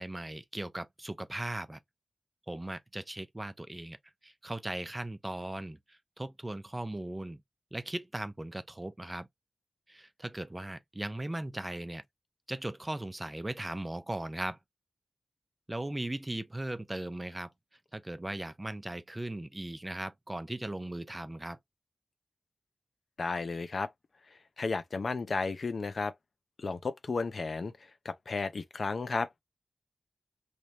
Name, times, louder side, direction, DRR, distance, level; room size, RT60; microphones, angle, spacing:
voice 1, 0.0-1.8 2.5-4.0 4.2-7.4 7.7-9.3 9.9-12.0 12.5-14.6 15.7-17.5 17.9-21.6, right 1 dB, 20° right, 0.5 m, -38 dB
voice 2, 23.2-23.9 24.3-26.1 26.6-29.4, left 4 dB, 65° left, 0.6 m, -34 dB
3.3 x 3.0 x 2.7 m
wide cardioid pair, 80°, 0 cm